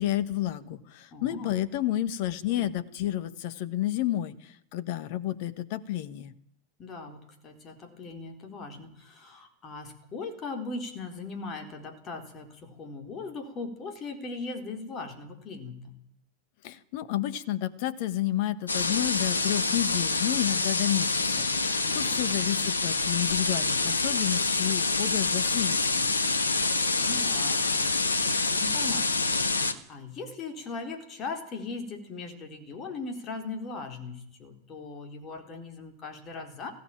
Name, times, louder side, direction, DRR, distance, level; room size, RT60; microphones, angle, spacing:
voice 1, 0.0-6.3 16.6-26.2, left 13 dB, 50° left, 18 dB, 1.3 m, -31 dB
voice 2, 1.1-1.5 6.8-16.0 21.9-22.2 26.9-36.7, left 3 dB, 30° left, 6 dB, 4.1 m, -39 dB
sound 1, 18.7-29.7, left 3 dB, 75° left, 1.4 m, -27 dB
20.5 x 16.0 x 9.0 m, 0.75 s
figure-of-eight pair, 90°, 0 cm